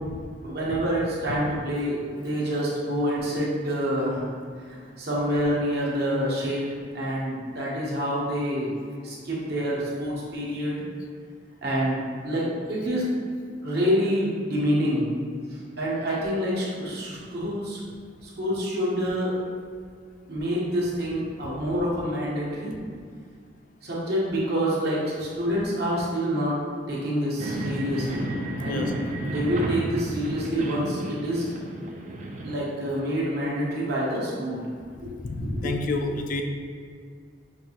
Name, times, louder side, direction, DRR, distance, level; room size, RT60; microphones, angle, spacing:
voice 1, 0.4-4.2 4.7-6.7 6.9-8.7 9.0-10.8 11.6-13.1 13.6-15.1 15.8-17.8 18.4-19.3 20.3-22.8 23.8-26.6 26.9-28.2 28.6-28.8 29.2-31.5 32.4-34.6 35.0-35.8, equal, 60° right, -5 dB, 1.0 m, -27 dB
sound 1, 27.4-32.5, right 1 dB, 40° right, 0.4 m, -32 dB
voice 2, 35.3-36.4, left 2 dB, 45° left, 4 dB, 0.3 m, -29 dB
5.2 x 2.6 x 2.9 m, 2.1 s
head